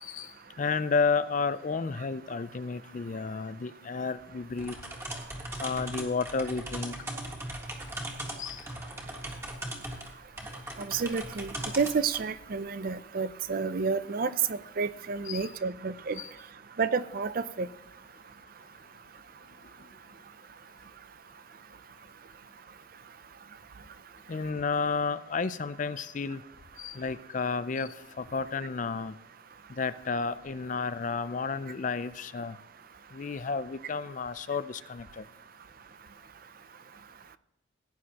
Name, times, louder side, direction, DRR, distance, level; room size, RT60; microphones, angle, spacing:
voice 1, 0.0-4.8 5.6-6.9 8.4-8.6 15.3-15.5 16.2-16.3 24.3-26.4 26.8-29.1 29.7-32.6 33.1-35.2, left 4 dB, 40° left, 15 dB, 0.4 m, -32 dB
sound 1, 4.6-12.3, right 1 dB, 15° right, 1.7 m, -39 dB
voice 2, 10.8-16.2 16.8-17.7, right 5 dB, 45° right, 14 dB, 0.5 m, -30 dB
17.5 x 9.5 x 2.9 m, 0.92 s
head